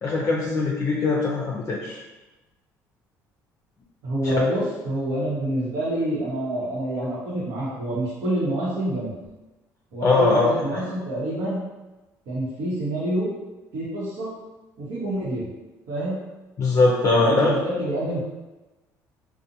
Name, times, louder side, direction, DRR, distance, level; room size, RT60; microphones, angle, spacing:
voice 1, 0.0-2.0 4.2-4.4 10.0-10.8 16.6-17.6, left 3 dB, 40° left, -2 dB, 0.4 m, -21 dB
voice 2, 4.0-9.1 9.9-11.6 12.3-13.3 13.7-14.3 14.8-15.5 15.9-16.2 17.1-18.2, right 1 dB, 75° right, -11 dB, 0.9 m, -27 dB
2.5 x 2.1 x 2.8 m, 1.1 s
supercardioid pair, 80°, 8 cm